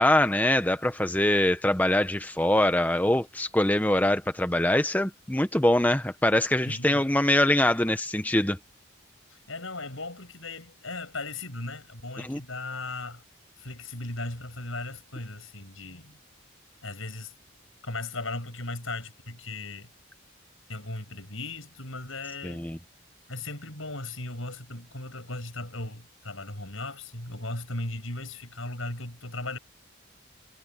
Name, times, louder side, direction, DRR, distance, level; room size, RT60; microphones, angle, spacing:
voice 1, 0.0-8.6 12.2-12.4 22.4-22.8, left 1 dB, 10° left, 0.7 m, -23 dB
voice 2, 6.6-7.1 9.3-13.2 13.6-16.2 16.8-17.3 17.8-19.9 20.7-22.7 23.3-29.6, left 2 dB, 80° left, 7.3 m, -37 dB
head